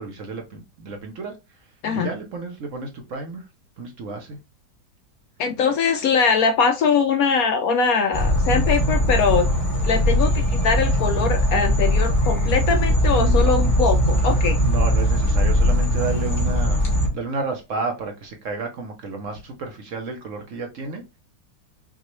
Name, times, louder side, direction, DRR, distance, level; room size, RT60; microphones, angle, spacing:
voice 1, 0.0-3.5 3.8-4.4 13.1-13.5 14.6-21.0, right 4 dB, 60° right, 0.9 m, -32 dB
voice 2, 5.4-9.5 9.9-14.6, left 5 dB, 70° left, 0.9 m, -21 dB
sound 1, 8.1-17.1, equal, 30° left, 1.5 m, -20 dB
5.9 x 2.3 x 3.0 m
omnidirectional pair, 1.8 m